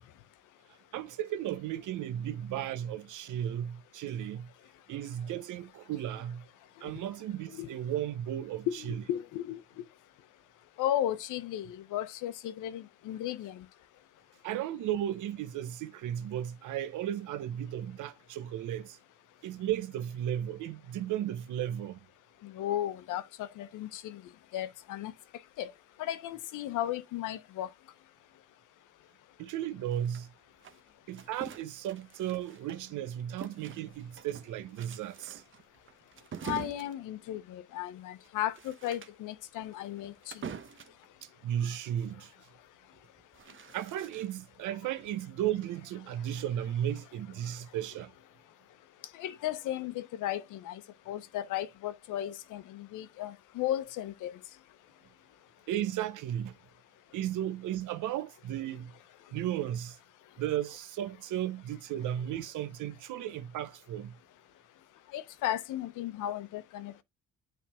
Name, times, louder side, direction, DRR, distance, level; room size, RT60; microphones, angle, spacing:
voice 1, 0.9-4.5 4.9-6.4 6.8-9.0 14.4-19.0 19.4-22.0 29.4-30.3 31.1-35.4 41.2-42.3 43.7-48.1 55.7-56.5 57.1-58.9 59.3-60.0 60.4-64.1, right 11 dB, 85° right, 0.8 m, -35 dB
voice 2, 8.7-9.8 10.8-13.6 22.4-24.2 24.5-25.1 25.6-25.7 26.0-27.7 36.4-40.1 49.2-50.8 51.1-54.3 65.1-67.0, left 12 dB, 90° left, 0.8 m, -35 dB
sound 1, 29.9-33.0 33.4-41.1 42.9-44.6, right 7 dB, 40° right, 0.9 m, -46 dB
8.5 x 3.6 x 3.5 m
cardioid pair, 90°, 30 cm